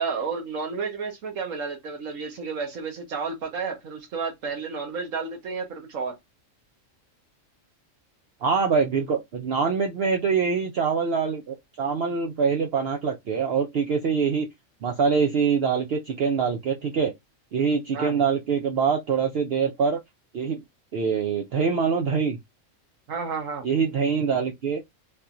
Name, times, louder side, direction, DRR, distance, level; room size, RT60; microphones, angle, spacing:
voice 1, 0.0-6.1 17.9-18.2 23.1-23.7, right 5 dB, 80° right, 1.4 m, -31 dB
voice 2, 8.4-14.5 14.8-17.1 17.5-20.0 20.3-20.6 20.9-22.4 23.6-24.8, right 6 dB, 60° right, 0.7 m, -24 dB
3.4 x 2.9 x 2.5 m
omnidirectional pair, 1.4 m